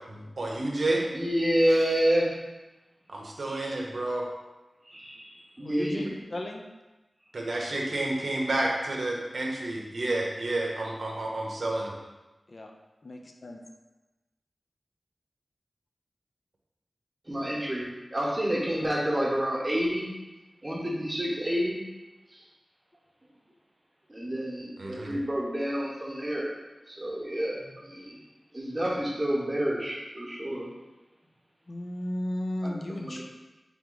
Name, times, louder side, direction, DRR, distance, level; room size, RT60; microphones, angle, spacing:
voice 1, 0.1-1.1 3.1-4.3 7.3-11.9 24.8-25.1, right 2 dB, 70° right, -1 dB, 0.7 m, -30 dB
voice 2, 1.1-2.3 3.5-3.7 4.9-5.3 5.6-6.0 17.3-20.1 20.6-21.8 24.1-26.5 26.9-28.2 28.5-30.7 32.6-33.2, equal, 25° right, -4 dB, 1.0 m, -28 dB
voice 3, 5.6-6.6 12.5-12.7 13.0-13.6 31.7-33.2, left 1 dB, 50° left, 2 dB, 0.4 m, -35 dB
3.4 x 3.0 x 3.8 m, 1.1 s
wide cardioid pair, 80°, 0 cm